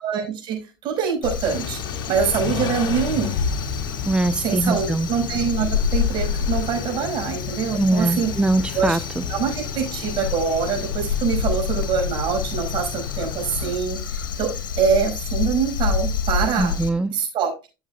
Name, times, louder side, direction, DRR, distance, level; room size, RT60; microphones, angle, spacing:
voice 1, 0.0-1.8 2.1-3.3 4.4-8.3 8.7-9.0 9.3-16.7 17.1-17.5, right 6 dB, 50° right, 2 dB, 5.3 m, -24 dB
Crow, 1.2-16.9, left 6 dB, 80° left, 1.3 m, -28 dB
Car / Idling / Accelerating revving vroom, 1.4-13.8, left 8 dB, 45° left, 2.0 m, -34 dB
voice 2, 4.1-5.1 7.7-9.2 16.6-17.1, right 2 dB, 10° right, 14 dB, 0.5 m, -22 dB
13.5 x 7.2 x 2.3 m, 0.29 s
hypercardioid pair, 80°, 11 cm